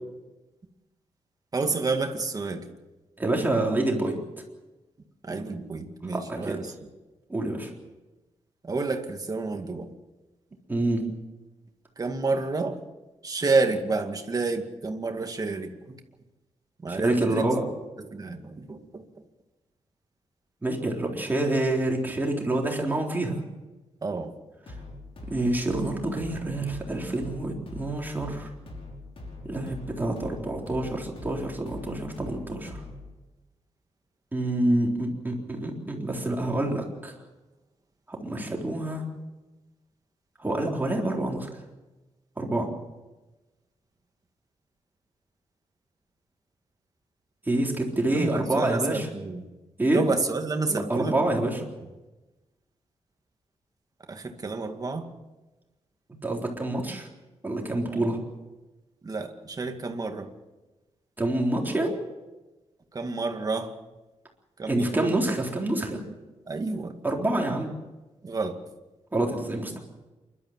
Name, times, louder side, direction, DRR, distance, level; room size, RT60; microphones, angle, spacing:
voice 1, 1.5-2.7 5.2-6.7 8.6-9.9 12.0-12.8 13.2-16.0 16.8-17.5 18.0-19.0 24.0-24.3 48.1-49.4 49.9-51.2 54.1-55.1 57.9-58.2 59.0-60.3 62.9-63.8 64.6-65.2 66.5-66.9 68.2-68.6, right 3 dB, 35° right, 5 dB, 2.2 m, -29 dB
voice 2, 3.2-4.2 6.1-6.4 7.3-7.7 10.7-11.0 16.9-17.6 20.6-23.4 25.3-28.5 29.4-32.8 34.3-37.1 38.1-39.0 40.4-41.5 42.4-42.7 47.5-49.0 49.8-50.0 50.7-51.6 56.2-57.1 57.4-58.2 61.2-62.0 64.7-66.0 67.0-67.7 69.1-69.8, right 1 dB, 15° right, 0 dB, 3.8 m, -27 dB
sound 1, 24.7-33.1, left 2 dB, 55° left, 5.5 m, -42 dB
28.5 x 12.5 x 7.5 m, 1.1 s
wide cardioid pair, 130°, 11 cm